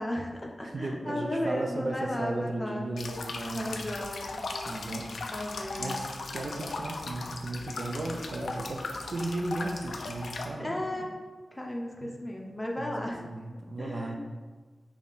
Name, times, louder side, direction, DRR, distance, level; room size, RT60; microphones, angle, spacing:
voice 1, 0.0-2.9 3.6-4.4 5.3-6.1 10.6-11.1 11.5-13.2 13.5-14.2, left 1 dB, 25° left, 0 dB, 0.5 m, -34 dB
voice 2, 0.6-3.8 4.6-5.1 5.8-8.8 9.1-11.1 12.0-12.1 12.8-14.2, right 2 dB, 65° right, 2 dB, 0.4 m, -35 dB
sound 1, 3.0-10.5, left 3 dB, 90° left, 0.3 m, -38 dB
3.5 x 2.3 x 3.9 m, 1.4 s
wide cardioid pair, 85°, 0 cm